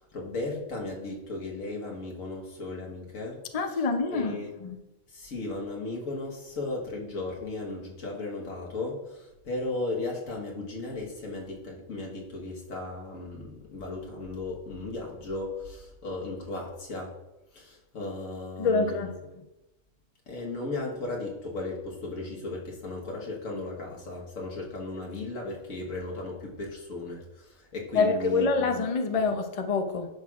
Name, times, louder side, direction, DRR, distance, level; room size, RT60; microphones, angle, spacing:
voice 1, 0.1-3.4 4.1-4.5 5.1-17.2 17.5-19.1 20.3-28.7, left 2 dB, 90° left, -1 dB, 1.7 m, -36 dB
voice 2, 3.5-4.8 18.6-19.4 27.9-30.1, left 4 dB, 45° left, 6 dB, 0.5 m, -26 dB
10.5 x 6.1 x 2.4 m, 0.99 s
omnidirectional pair, 1.4 m